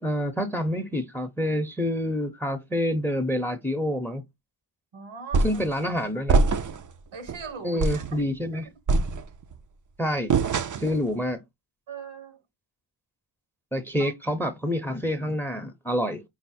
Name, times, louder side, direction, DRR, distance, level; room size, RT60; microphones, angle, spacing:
voice 1, 0.0-4.2 5.4-6.4 7.6-8.7 10.0-10.3 10.8-11.4 13.7-16.2, equal, 5° left, 0.7 m, -27 dB
voice 2, 4.9-5.6 7.1-8.2 8.5-8.6 11.9-12.4 14.0-14.1, right 6 dB, 75° right, 1.2 m, -40 dB
sound 1, 5.3-5.7 6.3-6.9 7.3-7.4 7.8-8.2 8.9-9.6 10.3-11.0, right 3 dB, 40° right, 0.5 m, -23 dB
4.8 x 2.0 x 4.2 m
wide cardioid pair, 70°, 48 cm